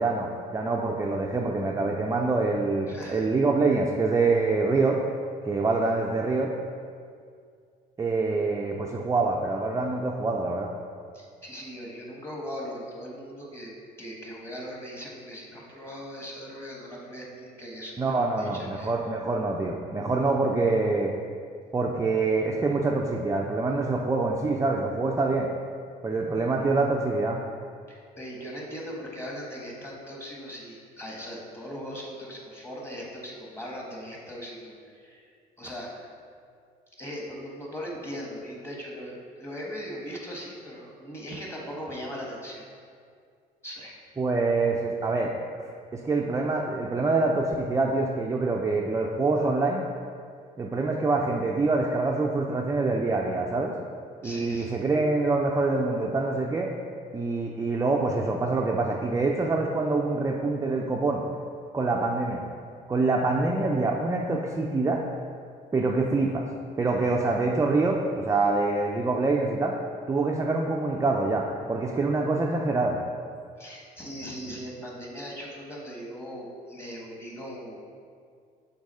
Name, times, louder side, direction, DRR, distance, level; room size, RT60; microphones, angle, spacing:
voice 1, 0.0-5.0 5.4-6.5 8.0-10.7 18.0-21.1 21.7-25.5 26.0-27.4 44.2-45.3 45.6-49.8 50.6-53.7 54.2-56.7 57.1-61.2 61.7-62.4 62.9-65.0 65.7-66.5 66.8-69.8 70.1-73.0, right 3 dB, 15° right, -1 dB, 0.5 m, -25 dB
voice 2, 2.9-3.3 11.1-18.9 27.9-35.3 35.6-36.1 37.0-42.6 43.6-43.9 54.2-54.8 73.6-77.8, equal, 15° left, -2 dB, 1.5 m, -39 dB
6.1 x 4.0 x 5.5 m, 2.2 s
cardioid pair, 110°, 17 cm